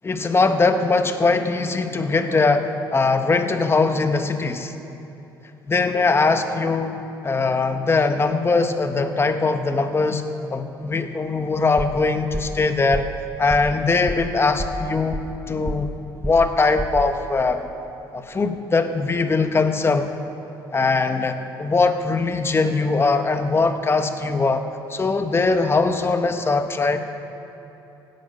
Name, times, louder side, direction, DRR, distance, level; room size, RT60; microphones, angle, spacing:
voice 1, 0.0-4.7 5.7-7.0 7.2-10.2 10.5-13.0 13.4-15.9 16.2-17.7 18.1-20.1 20.7-24.6 24.9-27.0, left 3 dB, 25° left, 8 dB, 1.1 m, -21 dB
sound 1, 11.8-12.1 12.3-12.6 12.9-13.2 13.5-13.8 14.1-14.3 14.6-15.4 15.7-16.0 16.2-16.5 16.8-17.1, equal, 5° right, 1.2 m, -29 dB
17.5 x 11.0 x 5.5 m, 3.0 s
cardioid pair, 85°, 9 cm